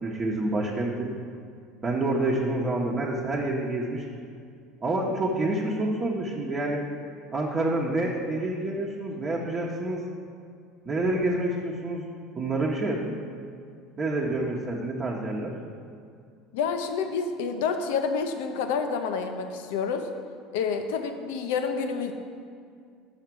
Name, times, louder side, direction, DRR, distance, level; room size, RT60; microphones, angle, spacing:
voice 1, 0.0-1.1 1.8-4.0 4.8-6.9 7.3-10.0 10.9-12.1 12.4-13.1 14.0-15.5, right 2 dB, 30° right, -4 dB, 1.0 m, -28 dB
voice 2, 16.5-20.1 20.5-22.1, left 5 dB, 80° left, 7 dB, 0.6 m, -28 dB
5.8 x 5.7 x 6.1 m, 2.3 s
hypercardioid pair, 85°, 0 cm